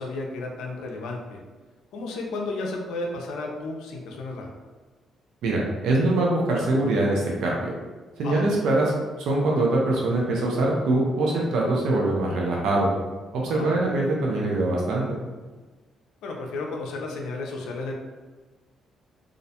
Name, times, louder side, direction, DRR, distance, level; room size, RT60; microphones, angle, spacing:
voice 1, 0.0-1.4 1.9-4.5 8.2-8.5 13.5-13.7 16.2-17.9, left 2 dB, 90° left, 0 dB, 0.4 m, -33 dB
voice 2, 5.4-7.7 8.2-8.9 9.2-12.9 13.3-15.0, right 2 dB, 80° right, -3 dB, 0.5 m, -23 dB
2.4 x 2.1 x 2.7 m, 1.3 s
cardioid pair, 90°, 0 cm